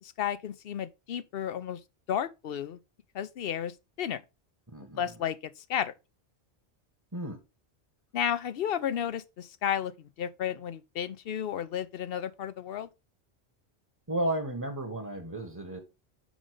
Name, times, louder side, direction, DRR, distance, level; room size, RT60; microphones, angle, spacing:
voice 1, 0.0-1.8 2.1-2.8 3.1-4.2 5.0-5.9 8.1-12.9, left 9 dB, 65° left, 0.8 m, -33 dB
voice 2, 4.7-5.2 7.1-7.4 14.1-15.8, right 1 dB, 20° right, 1.2 m, -33 dB
6.3 x 5.1 x 4.9 m
omnidirectional pair, 1.1 m